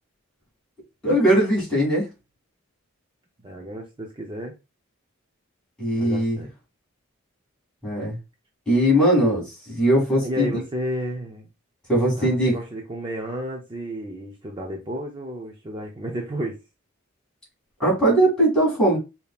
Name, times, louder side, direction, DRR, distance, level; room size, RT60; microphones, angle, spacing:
voice 1, 1.0-2.1 5.8-6.4 7.8-8.2 8.7-10.6 11.9-12.5 17.8-19.0, right 1 dB, 5° left, -6 dB, 2.3 m, -20 dB
voice 2, 3.4-4.5 6.0-6.5 10.2-11.5 12.2-16.6, right 1 dB, 20° right, 1 dB, 0.5 m, -32 dB
5.1 x 2.8 x 2.3 m, 0.26 s
head